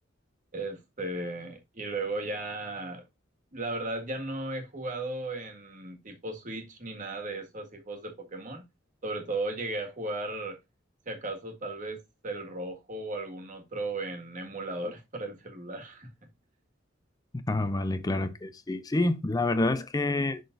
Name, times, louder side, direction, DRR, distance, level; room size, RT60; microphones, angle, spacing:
voice 1, 0.5-3.0 3.5-8.6 9.0-10.6 11.0-16.1, right 2 dB, 40° right, 1.8 m, -36 dB
voice 2, 17.3-20.4, left 2 dB, 20° left, 0.4 m, -28 dB
11.0 x 3.9 x 2.6 m
head